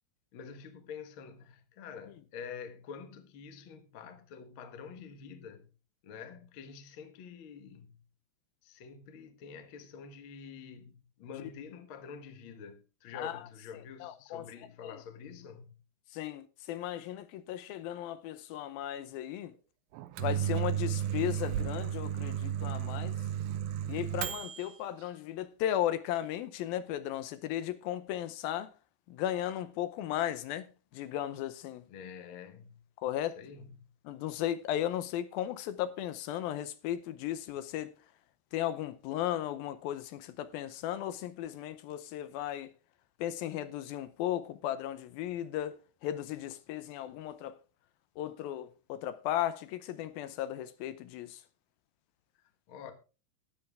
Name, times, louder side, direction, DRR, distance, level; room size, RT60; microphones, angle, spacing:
voice 1, 0.3-5.7 6.0-8.0 8.6-15.7 31.9-32.8 33.4-33.8 52.7-52.9, left 6 dB, 60° left, 1.4 m, -47 dB
voice 2, 14.0-14.5 14.8-15.0 16.1-19.5 20.2-23.2 23.9-28.7 29.1-30.7 30.9-31.9 33.0-33.4 34.1-37.9 38.5-42.7 43.2-47.6 48.2-51.4, left 12 dB, 80° left, 2.5 m, -36 dB
Microwave oven, 19.9-24.7, right 10 dB, 75° right, 2.4 m, -33 dB
13.0 x 10.0 x 3.5 m
omnidirectional pair, 4.3 m